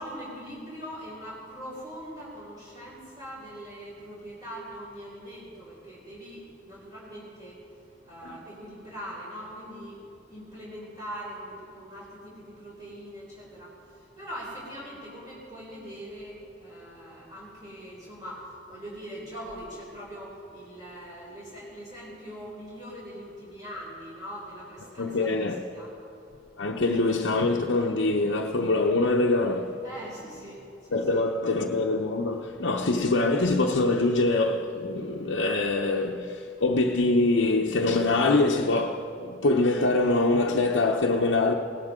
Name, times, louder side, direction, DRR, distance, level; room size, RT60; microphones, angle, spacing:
voice 1, 0.0-7.6 8.0-10.0 10.3-25.9 29.8-31.3, equal, 20° right, 4.1 m, -42 dB
voice 2, 25.0-25.6 26.6-29.8 30.9-41.5, left 2 dB, 70° left, 0.8 m, -24 dB
21.0 x 18.0 x 3.7 m
head